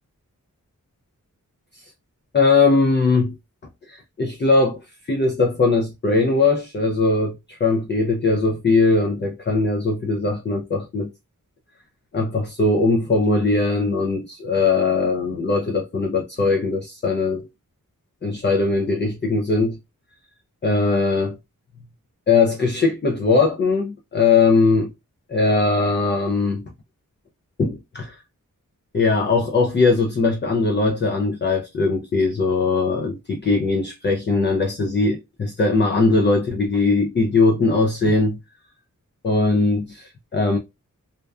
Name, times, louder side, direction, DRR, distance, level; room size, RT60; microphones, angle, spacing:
voice 1, 2.3-3.3 3.9-4.8 5.0-11.1 12.1-17.5 18.2-19.8 20.6-21.4 22.3-24.9 25.3-26.6 27.6-28.2 28.9-38.4 39.2-40.6, left 3 dB, 35° left, 0.4 m, -20 dB
2.5 x 2.2 x 2.3 m
wide cardioid pair, 65°, 34 cm